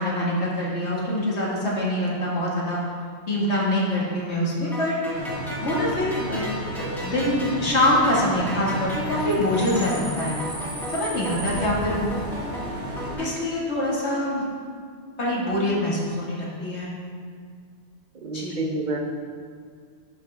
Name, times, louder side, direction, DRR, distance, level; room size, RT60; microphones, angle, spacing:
voice 1, 0.0-2.8 3.3-5.3 5.6-10.4 10.9-12.1 12.9-14.4 15.2-16.9 18.3-18.6, left 1 dB, 80° left, -5 dB, 2.0 m, -25 dB
sound 1, 4.7-13.3, equal, ahead, 1.8 m, -36 dB
Bus / Idling / Screech, 5.1-13.2, equal, 65° right, 1.6 m, -33 dB
voice 2, 18.2-19.0, right 2 dB, 45° right, 3 dB, 0.8 m, -28 dB
11.5 x 5.7 x 3.4 m, 2.1 s
omnidirectional pair, 1.1 m